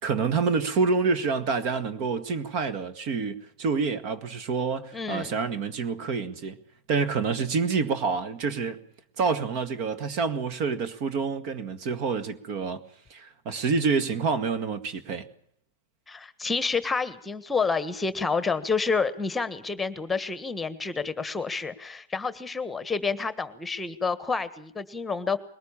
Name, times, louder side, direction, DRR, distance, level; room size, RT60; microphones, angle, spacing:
voice 1, 0.0-6.6 6.9-8.8 9.2-12.8 13.1-15.3, right 5 dB, 45° right, 1.9 m, -27 dB
voice 2, 4.9-5.3 16.1-25.4, left 4 dB, 10° left, 1.5 m, -29 dB
21.5 x 19.0 x 7.4 m
hypercardioid pair, 110°, 0 cm